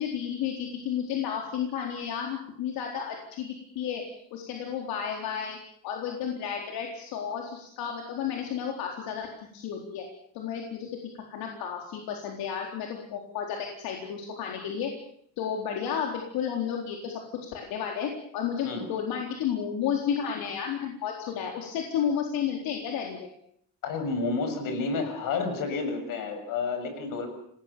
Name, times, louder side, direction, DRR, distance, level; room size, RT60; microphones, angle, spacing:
voice 1, 0.0-4.0 4.3-5.6 5.8-9.3 9.5-10.0 10.3-10.9 11.1-14.9 15.4-17.2 17.5-23.3, left 8 dB, 85° left, 1 dB, 4.1 m, -32 dB
voice 2, 23.8-27.3, left 4 dB, 65° left, 7 dB, 7.1 m, -30 dB
28.0 x 20.0 x 7.0 m, 0.67 s
cardioid pair, 170°, 35 cm